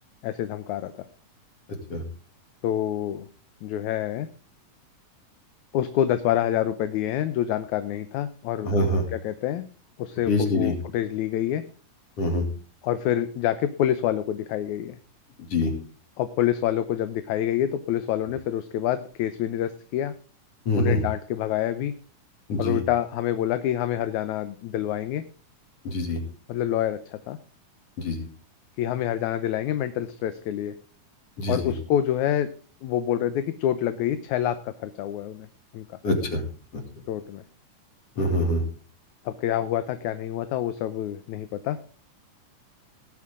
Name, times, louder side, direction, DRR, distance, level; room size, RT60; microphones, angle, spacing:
voice 1, 0.2-0.9 2.6-3.3 3.6-4.3 5.7-8.8 9.1-9.7 10.0-11.6 12.8-15.0 16.2-20.1 20.8-21.9 22.6-25.2 26.5-27.4 28.8-30.8 31.5-32.5 32.8-35.5 35.7-35.8 37.1-37.4 39.3-41.8, left 11 dB, 75° left, 11 dB, 2.0 m, -27 dB
voice 2, 8.6-9.0 10.3-10.7 12.2-12.4 15.5-15.7 20.7-21.0 22.5-22.8 25.8-26.2 28.0-28.2 31.4-31.7 36.0-36.4 36.7-36.8 38.2-38.6, left 1 dB, 50° left, 4 dB, 3.2 m, -24 dB
18.0 x 8.5 x 3.7 m, 0.38 s
omnidirectional pair, 3.7 m